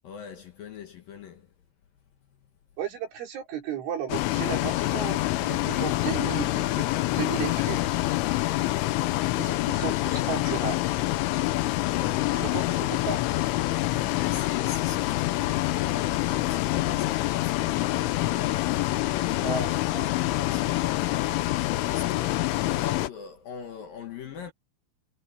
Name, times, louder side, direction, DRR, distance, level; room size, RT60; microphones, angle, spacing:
voice 1, 0.0-1.5 2.3-2.4 11.8-12.8 14.1-24.5, left 7 dB, 60° left, 2.6 m, -42 dB
voice 2, 2.8-7.9 9.4-10.8 12.4-13.2 19.4-20.1, right 8 dB, 75° right, 6.7 m, -34 dB
Bus, 4.1-23.1, left 17 dB, 90° left, 3.5 m, -26 dB
omnidirectional pair, 5.5 m